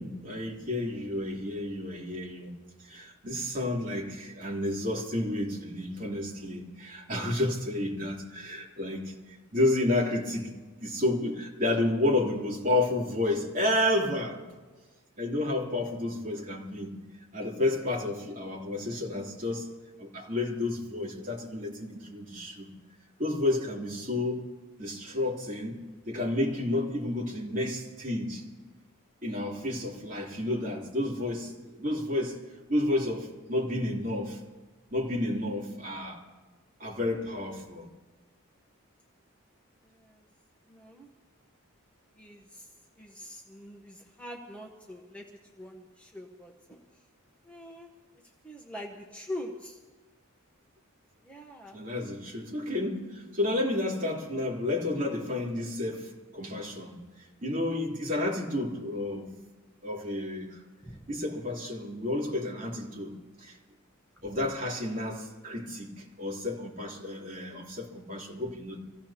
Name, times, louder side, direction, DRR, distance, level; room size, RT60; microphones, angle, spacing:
voice 1, 0.0-2.5 2.8-9.1 9.5-10.5 10.8-14.4 15.2-16.9 17.3-19.7 20.0-22.7 23.2-24.5 24.8-25.8 26.0-28.4 29.2-31.5 31.8-32.4 32.7-34.4 34.9-36.2 36.8-37.9 51.7-59.3 59.8-60.6 61.1-63.1 63.4-63.6 64.2-68.8, left 1 dB, 40° right, 3.2 m, -31 dB
voice 2, 39.8-40.2 40.7-41.1 42.1-42.7 43.0-45.3 45.6-46.8 47.4-47.9 48.4-49.8 51.2-51.8 60.8-61.1 64.3-64.4, left 1 dB, 5° left, 1.0 m, -44 dB
26.5 x 16.0 x 2.9 m
head